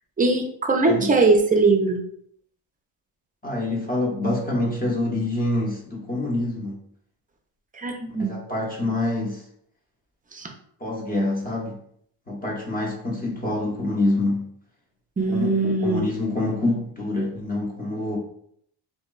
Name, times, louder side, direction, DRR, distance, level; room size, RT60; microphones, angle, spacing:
voice 1, 0.2-2.0 7.7-8.3 10.3-10.5 15.2-16.0, right 3 dB, 20° right, 3 dB, 0.4 m, -21 dB
voice 2, 3.4-6.8 8.2-9.4 10.8-11.8 12.3-14.4 15.3-18.2, left 2 dB, 20° left, -2 dB, 0.6 m, -26 dB
2.9 x 2.0 x 2.2 m, 0.67 s
cardioid pair, 75°, 47 cm